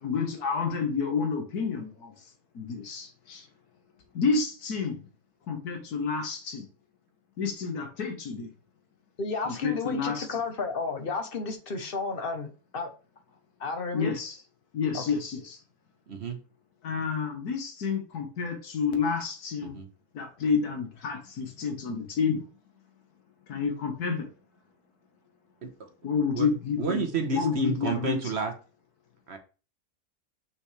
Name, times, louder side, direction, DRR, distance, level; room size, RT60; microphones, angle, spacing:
voice 1, 0.0-2.3 2.5-3.5 4.1-5.0 5.5-6.7 7.4-8.5 9.5-10.4 13.9-14.4 14.7-15.6 16.8-19.8 20.1-22.5 23.5-24.3 26.0-27.1 27.3-28.2, left 5 dB, 85° left, 1.8 m, -29 dB
voice 2, 9.2-12.5 12.7-12.9 13.6-14.1 14.9-15.0, left 4 dB, 40° left, 1.1 m, -32 dB
voice 3, 16.1-16.4 19.6-19.9 25.6-25.9 26.3-26.5 26.8-28.5 29.3-29.4, right 4 dB, 50° right, 1.1 m, -30 dB
6.6 x 5.7 x 3.2 m
omnidirectional pair, 1.6 m